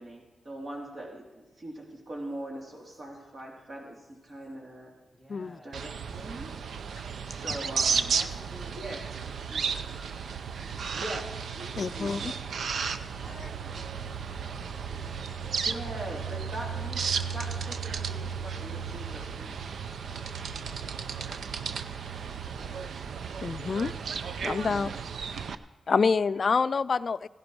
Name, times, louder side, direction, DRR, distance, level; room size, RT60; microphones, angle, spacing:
voice 1, 0.0-4.9 5.6-6.5 7.2-8.2 8.7-9.0 10.9-12.4 15.6-19.6 22.5-22.8 24.6-25.0, right 1 dB, 55° right, -1 dB, 3.1 m, -41 dB
voice 2, 5.1-5.8 8.0-8.9 9.2-9.8 10.6-11.0 13.2-15.2 15.8-16.6 22.4-22.9, equal, 30° right, -1 dB, 3.4 m, -53 dB
sound 1, 5.7-25.5, right 6 dB, 75° right, 0.5 m, -34 dB
voice 3, 11.8-12.3 23.4-23.9 24.4-24.9 25.9-27.3, left 5 dB, 55° left, 16 dB, 0.4 m, -27 dB
16.0 x 11.0 x 4.8 m, 1.1 s
cardioid pair, 65°, 0 cm